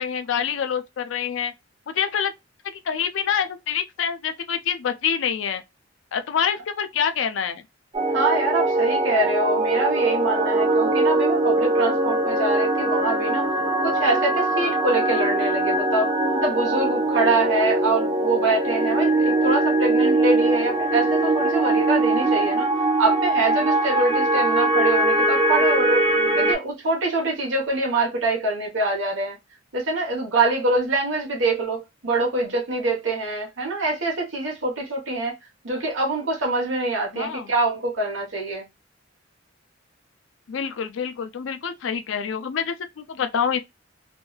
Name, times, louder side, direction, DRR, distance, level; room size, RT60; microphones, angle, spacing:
voice 1, 0.0-1.5 1.9-2.3 2.8-5.6 6.1-7.6 37.1-37.5 40.5-43.6, left 7 dB, 70° left, 0.4 m, -26 dB
sound 1, 7.9-26.6, right 2 dB, 30° right, 0.6 m, -21 dB
voice 2, 8.1-13.4 13.8-16.1 16.4-22.7 23.0-26.0 26.4-29.4 29.7-35.3 35.6-38.6, right 2 dB, 75° right, 1.1 m, -24 dB
2.7 x 2.3 x 2.3 m
head